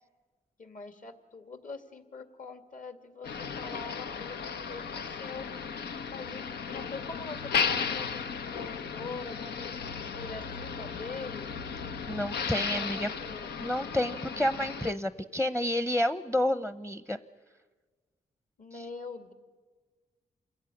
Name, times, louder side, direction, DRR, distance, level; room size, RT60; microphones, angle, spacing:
voice 1, 0.6-5.5 6.1-11.5 12.7-13.5 18.6-19.3, left 4 dB, 55° left, 8 dB, 2.5 m, -44 dB
Motor vehicle (road), 3.2-14.9, left 6 dB, 90° left, 0.9 m, -35 dB
voice 2, 12.1-13.1 13.6-17.2, left 1 dB, 5° left, 14 dB, 0.8 m, -29 dB
27.5 x 16.5 x 10.0 m, 1.4 s
cardioid pair, 65°, 16 cm